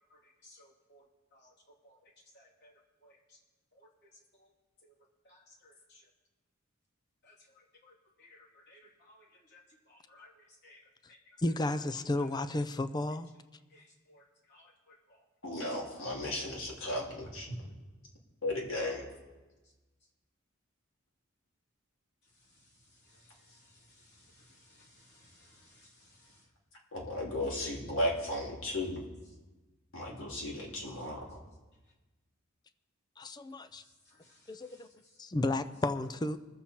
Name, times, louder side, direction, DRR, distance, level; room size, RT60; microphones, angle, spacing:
voice 1, 0.4-1.0 1.4-1.5 1.8-1.9 2.3-2.7 3.0-3.1 5.2-5.7 7.3-7.4 7.8-7.9 8.2-8.8 9.1-9.2 9.5-9.6 9.9-10.3 10.6-10.8 13.7-13.8 14.1-14.2 14.5-14.7 17.5-17.6 25.1-25.9, equal, 55° left, -3 dB, 2.8 m, -54 dB
voice 2, 11.4-13.3 33.2-33.8 34.5-34.9 35.2-36.4, left 2 dB, 20° left, 12 dB, 0.4 m, -32 dB
voice 3, 15.4-17.7 18.4-19.1 26.9-29.0 29.9-31.4, left 1 dB, 70° left, -2 dB, 2.8 m, -35 dB
21.5 x 7.4 x 4.3 m, 1.2 s
head